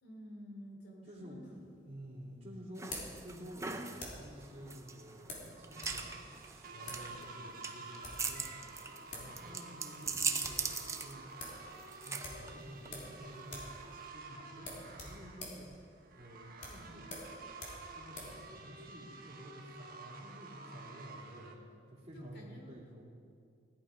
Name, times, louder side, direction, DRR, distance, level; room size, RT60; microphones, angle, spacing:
voice 1, 0.0-1.6 22.1-22.8, equal, 60° left, 0 dB, 3.1 m, -51 dB
voice 2, 1.1-6.2 6.7-8.6 9.1-11.4 12.0-13.6 14.1-15.7 16.1-17.3 17.9-21.6 21.9-23.1, equal, 35° right, -7 dB, 2.9 m, -51 dB
sound 1, 1.4-4.4 5.3-6.0 6.3-6.4 6.8-7.1 7.8-8.3 8.8-8.9 9.1-9.3 9.6-9.7 10.1-10.7 11.0-11.1 11.4-11.6 12.2-13.2 13.4-13.8 14.0-14.2 14.6-18.4, left 2 dB, 45° left, 3.4 m, -47 dB
sound 2, 2.8-14.1, right 4 dB, 15° right, 0.7 m, -41 dB
sound 3, 4.4-21.5, right 3 dB, 50° right, 1.3 m, -51 dB
16.5 x 11.5 x 5.1 m, 2.3 s
head